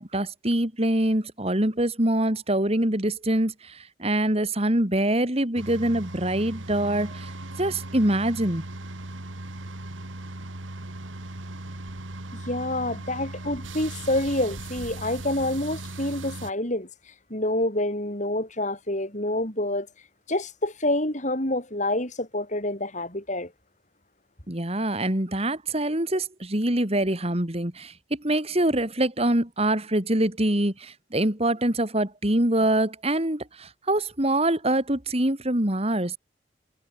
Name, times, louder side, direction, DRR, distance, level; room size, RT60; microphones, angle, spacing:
voice 1, 0.0-8.6 24.5-36.2, right 1 dB, 30° right, 2.9 m, -25 dB
sound 1, 5.6-16.5, right 2 dB, 90° right, 2.5 m, -38 dB
voice 2, 12.3-19.9 20.3-23.5, left 1 dB, 40° left, 7.1 m, -27 dB
head